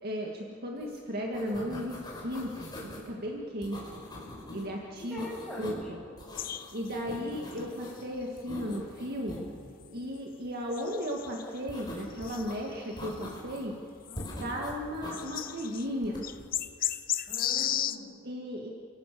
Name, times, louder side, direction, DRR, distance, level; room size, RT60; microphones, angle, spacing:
voice 1, 0.0-4.0 4.5-5.2 5.6-6.0 6.7-9.4 9.9-13.7 14.4-16.3 18.2-18.7, equal, 50° right, -1 dB, 2.0 m, -35 dB
sound 1, 0.8-1.0 1.2-3.1 3.6-4.6 5.0-5.9 6.2-8.0 8.4-9.4 11.7-12.6 13.0-13.7 14.1-15.2 16.0-16.5, left 1 dB, 20° left, 5.0 m, -43 dB
voice 2, 4.9-5.9 14.1-14.3 17.3-18.1, left 1 dB, ahead, -5 dB, 6.7 m, -43 dB
sound 2, 6.4-7.1 7.5-7.6 8.2-8.3 8.7-8.8 9.6-9.7 10.7-11.6 12.2-13.1 13.6-13.7 14.1-14.5 14.8-14.9 15.1-15.9 16.2-18.0, left 11 dB, 45° left, 0.7 m, -34 dB
30.0 x 17.0 x 6.9 m, 2.4 s
head